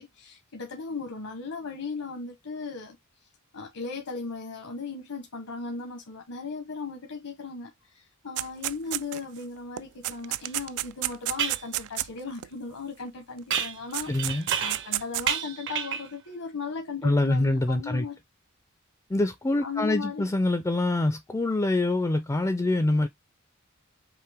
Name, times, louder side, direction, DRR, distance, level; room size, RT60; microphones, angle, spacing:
voice 1, 0.0-3.0 3.5-18.2 19.6-20.3, left 4 dB, 80° left, 1.0 m, -37 dB
sound 1, 8.4-9.4 9.8-12.5 13.6-13.7 13.9-15.3, right 16 dB, 80° right, 0.3 m, -31 dB
sound 2, 10.4-10.5 11.4-11.7 13.5-15.0 15.3-16.1, right 8 dB, 55° right, 0.8 m, -30 dB
voice 2, 14.1-14.5 17.0-18.1 19.1-23.1, left 2 dB, 15° left, 0.3 m, -25 dB
5.6 x 2.1 x 3.4 m
head